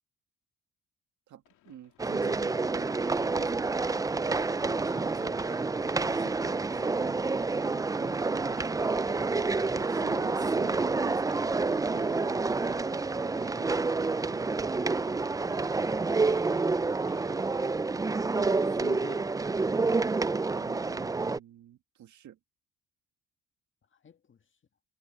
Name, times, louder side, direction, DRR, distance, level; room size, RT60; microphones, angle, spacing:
voice 1, 1.3-3.5 6.8-7.2 7.9-8.7 9.7-12.9 13.4-14.6 20.5-22.4, right 10 dB, 70° right, 2.0 m, -49 dB
sound 1, 1.4-18.2, left 13 dB, 80° left, 2.6 m, -62 dB
sound 2, 2.0-21.4, right 3 dB, 10° right, 0.4 m, -28 dB
voice 2, 4.6-6.8 18.2-19.4 23.9-24.5, left 6 dB, 40° left, 1.9 m, -49 dB
cardioid pair, 90°, 30 cm